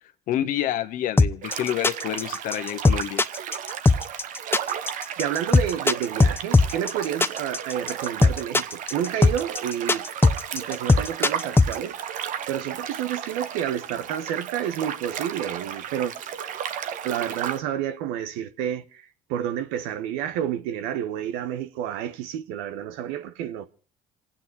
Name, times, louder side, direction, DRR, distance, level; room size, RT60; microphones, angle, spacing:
voice 1, 0.3-3.2, left 11 dB, 70° left, 1.4 m, -28 dB
sound 1, 1.2-11.7, left 3 dB, 15° left, 0.9 m, -19 dB
sound 2, 1.4-17.6, right 9 dB, 65° right, 1.1 m, -34 dB
voice 2, 5.2-10.0 10.5-12.0 12.5-16.1 17.0-23.7, right 10 dB, 85° right, 1.1 m, -30 dB
27.0 x 9.2 x 4.7 m
supercardioid pair, 75°, 14 cm